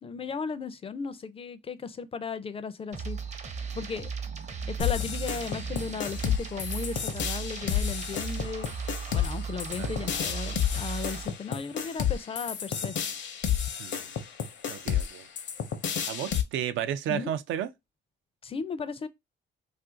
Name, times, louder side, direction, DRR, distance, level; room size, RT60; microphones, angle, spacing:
voice 1, 0.0-3.2 3.7-4.1 4.7-8.7 9.1-13.0 17.1-17.3 18.4-19.1, left 5 dB, 30° left, 0.4 m, -36 dB
sound 1, 2.9-11.3, right 5 dB, 35° right, 0.6 m, -36 dB
sound 2, 4.8-16.4, left 8 dB, 65° left, 0.7 m, -31 dB
voice 2, 14.7-15.3 16.1-17.7, right 10 dB, 80° right, 0.4 m, -32 dB
2.6 x 2.5 x 3.7 m
cardioid pair, 90°, 20 cm